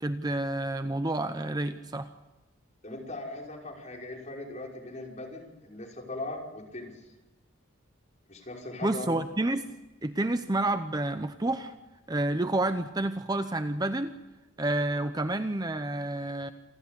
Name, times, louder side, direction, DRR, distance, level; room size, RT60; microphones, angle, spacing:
voice 1, 0.0-2.1 8.8-9.6 10.0-11.7 12.1-14.1 14.6-16.5, right 2 dB, 20° right, 9 dB, 0.7 m, -29 dB
voice 2, 2.8-7.1 8.3-9.1, left 2 dB, 35° left, -1 dB, 5.5 m, -39 dB
27.5 x 13.5 x 8.2 m, 1.1 s
head